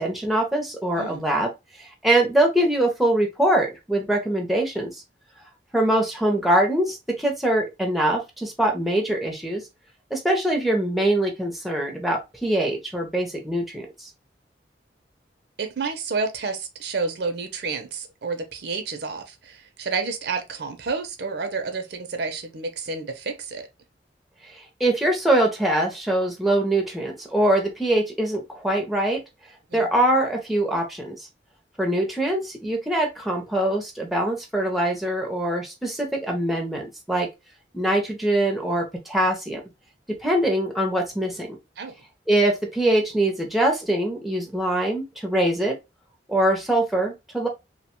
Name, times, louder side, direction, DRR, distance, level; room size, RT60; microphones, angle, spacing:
voice 1, 0.0-1.5 1.8-5.0 5.7-9.6 10.1-14.1 24.5-29.2 29.7-31.2 31.8-37.3 37.7-39.6 40.1-41.6 42.3-45.8 46.3-47.5, right 1 dB, ahead, 0.5 m, -23 dB
voice 2, 15.6-23.7 29.7-29.9 41.8-41.9, right 4 dB, 60° right, 0.5 m, -30 dB
2.7 x 2.1 x 2.9 m
head